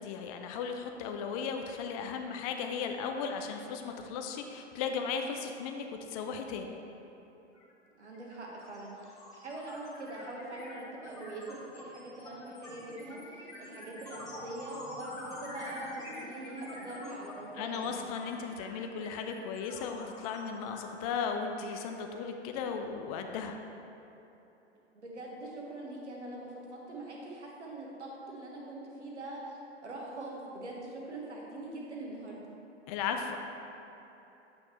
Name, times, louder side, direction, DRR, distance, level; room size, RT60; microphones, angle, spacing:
voice 1, 0.0-6.7 17.6-23.6 32.9-33.4, left 6 dB, 35° left, 4 dB, 0.5 m, -36 dB
sound 1, 7.5-7.7 8.0-22.3, left 1 dB, 10° left, 1.5 m, -47 dB
voice 2, 8.0-18.2 24.9-32.4, right 2 dB, 75° right, -3 dB, 1.5 m, -43 dB
8.4 x 6.0 x 3.0 m, 3.0 s
figure-of-eight pair, 100°, 35 cm